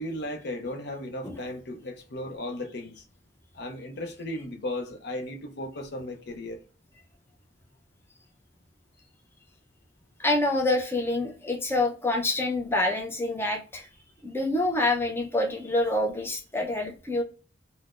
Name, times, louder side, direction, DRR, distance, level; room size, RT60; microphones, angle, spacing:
voice 1, 0.0-3.0 3.5-6.6, left 1 dB, 60° left, 0.6 m, -35 dB
voice 2, 10.2-13.9 14.2-17.2, left 2 dB, 15° left, 0.5 m, -26 dB
3.8 x 2.0 x 2.4 m
head